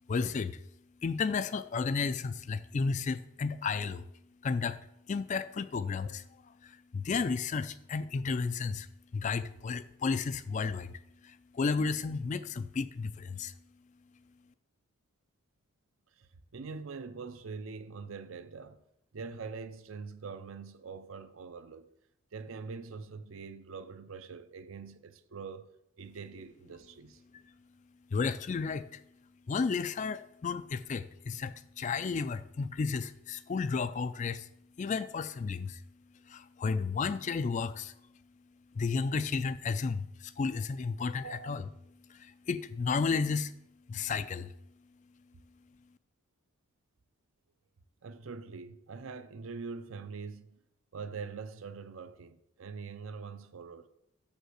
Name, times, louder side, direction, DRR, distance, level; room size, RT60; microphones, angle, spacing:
voice 1, 0.1-0.6 1.0-4.1 4.4-4.8 5.1-8.9 9.1-13.5 28.1-29.0 29.5-34.5 34.8-35.8 36.3-37.9 38.7-41.6 42.1-43.5 43.9-44.5, left 5 dB, 35° left, 0.3 m, -33 dB
voice 2, 16.1-18.8 19.1-21.9 22.3-25.7 26.0-27.2 41.2-41.6 48.0-50.6 50.9-53.9, right 5 dB, 70° right, 0.6 m, -44 dB
6.7 x 5.3 x 6.3 m
head